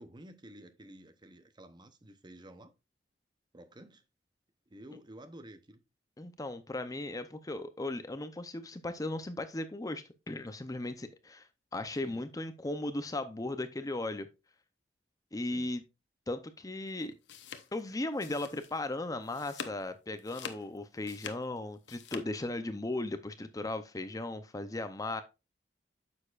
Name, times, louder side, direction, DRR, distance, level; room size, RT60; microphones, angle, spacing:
voice 1, 0.0-2.7 3.5-4.0 4.7-5.8 12.0-12.3 15.4-15.7, right 1 dB, 25° right, 0.7 m, -52 dB
voice 2, 6.2-11.5 11.7-14.3 15.3-15.8 16.3-17.1 17.7-25.2, left 2 dB, 20° left, 0.6 m, -37 dB
sound 1, 17.0-18.9 19.2-19.8 20.2-22.2, left 6 dB, 80° left, 0.9 m, -45 dB
9.5 x 6.7 x 2.4 m
head